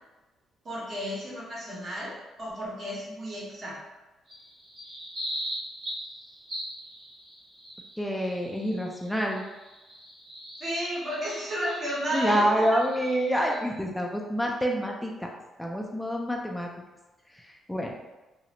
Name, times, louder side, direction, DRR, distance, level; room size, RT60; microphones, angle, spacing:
voice 1, 0.6-3.8 10.6-12.8, equal, 45° right, -6 dB, 1.1 m, -33 dB
sound 1, 4.3-13.6, equal, 60° right, 1.2 m, -41 dB
voice 2, 8.0-9.4 12.1-15.3 15.6-16.7 17.4-17.9, equal, 5° left, 0 dB, 0.3 m, -27 dB
2.6 x 2.0 x 2.7 m, 1.1 s
cardioid pair, 90°, 0 cm